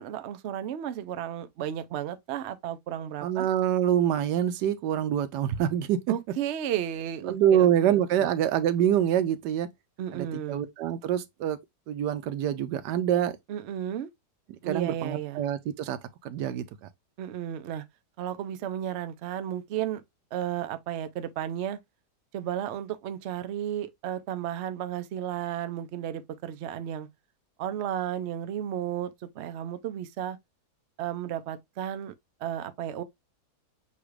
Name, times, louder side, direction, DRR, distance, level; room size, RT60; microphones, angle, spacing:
voice 1, 0.0-3.5 6.1-8.0 10.0-10.6 13.5-14.1 14.6-15.4 17.2-17.8 18.2-20.0 20.3-21.8 22.3-27.1 27.6-30.4 31.0-32.1 32.4-33.0, right 10 dB, 60° right, 0.7 m, -33 dB
voice 2, 3.2-6.1 7.2-9.7 10.1-11.6 11.9-13.4 14.5-16.9, right 10 dB, 85° right, 1.2 m, -26 dB
7.0 x 2.4 x 3.2 m
omnidirectional pair, 1.8 m